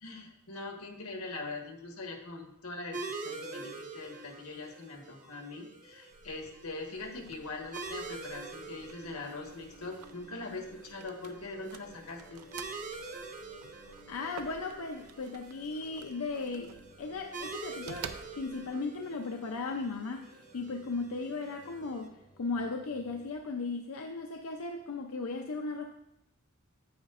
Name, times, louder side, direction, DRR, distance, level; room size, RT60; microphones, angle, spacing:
voice 1, 0.0-12.4, left 3 dB, 90° left, 2 dB, 1.4 m, -42 dB
sound 1, 2.9-22.1, right 3 dB, 40° right, 0.9 m, -46 dB
sound 2, 6.1-18.7, right 6 dB, 85° right, 0.5 m, -51 dB
sound 3, 7.4-23.4, equal, 20° left, 0.7 m, -59 dB
voice 2, 14.1-25.9, left 3 dB, 70° left, 4 dB, 0.5 m, -37 dB
9.3 x 8.2 x 2.4 m, 0.84 s
head